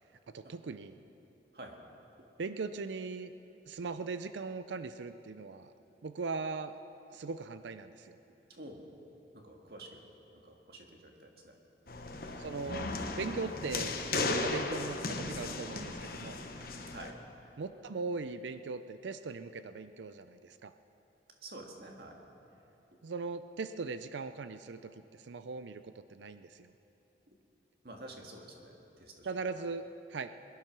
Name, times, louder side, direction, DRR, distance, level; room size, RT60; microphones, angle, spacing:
voice 1, 0.3-1.0 2.4-3.3 3.6-5.7 6.0-6.7 7.1-8.2 12.3-16.4 17.6-20.7 23.0-26.7 29.2-30.3, right 4 dB, 85° right, 11 dB, 0.5 m, -39 dB
voice 2, 9.3-10.0 10.4-11.5 16.9-17.1 21.4-22.2 27.8-29.3, right 1 dB, 60° right, 1 dB, 1.9 m, -49 dB
sound 1, 11.9-17.1, left 3 dB, 55° left, 1.0 m, -36 dB
21.0 x 11.0 x 6.0 m, 2.9 s
head